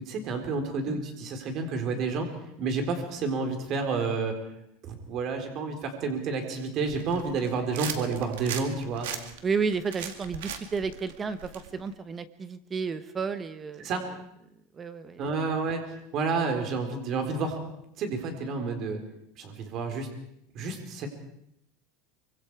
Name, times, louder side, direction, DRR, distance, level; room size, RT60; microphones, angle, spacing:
voice 1, 0.1-2.3 2.6-4.3 4.8-9.1 13.8-14.0 15.2-15.8 16.1-17.6 18.0-19.0 19.4-20.1 20.5-21.1, right 4 dB, 35° right, 5 dB, 4.0 m, -30 dB
sound 1, 6.8-11.9, right 9 dB, 90° right, 2.2 m, -39 dB
voice 2, 9.4-13.9 14.7-15.3, right 5 dB, 20° right, 12 dB, 1.0 m, -32 dB
24.5 x 24.5 x 4.8 m, 0.76 s
supercardioid pair, 160°, 0 cm